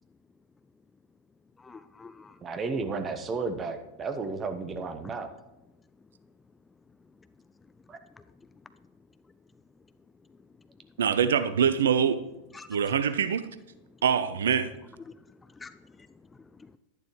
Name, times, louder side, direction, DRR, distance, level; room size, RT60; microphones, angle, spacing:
voice 1, 1.6-2.4 8.1-8.5 12.5-12.8 15.1-16.8, left 4 dB, 15° left, 0.4 m, -50 dB
voice 2, 2.4-5.3 7.9-8.0, right 4 dB, 25° right, 1.0 m, -33 dB
voice 3, 11.0-12.2 12.7-13.4 14.0-14.7, right 7 dB, 65° right, 0.5 m, -24 dB
11.5 x 10.5 x 3.1 m
figure-of-eight pair, 90°, 0 cm